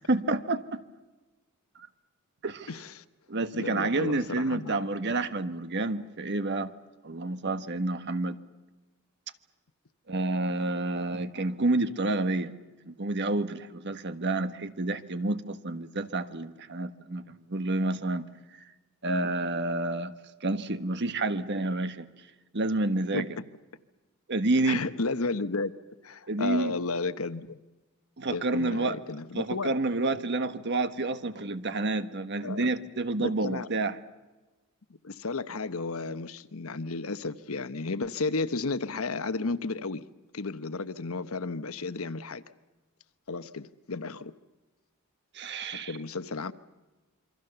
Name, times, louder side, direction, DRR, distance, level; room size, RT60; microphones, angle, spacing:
voice 1, 0.1-0.8 2.4-2.7 3.3-6.7 7.0-8.4 10.1-12.5 12.9-18.3 19.0-20.1 20.4-22.1 22.5-23.3 24.3-24.8 26.3-26.7 28.2-29.0 29.3-33.9 45.3-46.0, right 2 dB, 55° right, 10 dB, 1.4 m, -29 dB
voice 2, 2.7-3.0 3.5-4.8 23.1-23.2 24.6-25.7 26.0-27.6 28.3-29.7 32.4-32.7 33.2-33.7 35.0-40.0 40.3-42.4 43.3-44.3 45.7-46.5, left 3 dB, 80° left, 12 dB, 1.1 m, -33 dB
27.5 x 24.5 x 6.9 m, 1.2 s
head